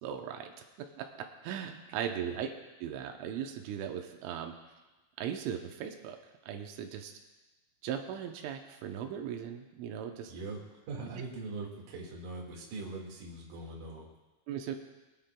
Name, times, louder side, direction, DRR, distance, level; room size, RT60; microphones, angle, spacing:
voice 1, 0.0-0.5 1.0-1.1 1.4-2.5 2.8-4.5 5.2-6.2 6.4-7.1 7.8-10.3 11.0-11.1 14.5-14.8, right 9 dB, 85° right, 3 dB, 3.3 m, -38 dB
voice 2, 10.3-10.6 10.9-14.1, right 3 dB, 55° right, -2 dB, 3.0 m, -41 dB
23.5 x 9.7 x 2.3 m, 1.1 s
omnidirectional pair, 5.4 m